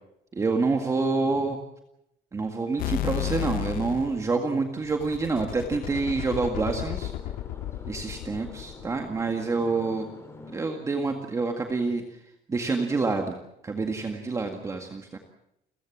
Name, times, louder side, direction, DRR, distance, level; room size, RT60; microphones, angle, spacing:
voice 1, 0.3-1.6 2.3-7.1 7.9-10.1 10.5-12.0 12.5-13.4 13.6-15.2, right 3 dB, 20° right, 4 dB, 1.9 m, -27 dB
sound 1, 2.8-4.2 4.9-9.1, left 12 dB, 60° left, 0.8 m, -33 dB
sound 2, 5.5-10.7, left 3 dB, 15° left, 3.9 m, -46 dB
30.0 x 15.5 x 7.4 m, 0.80 s
cardioid pair, 170°, 16 cm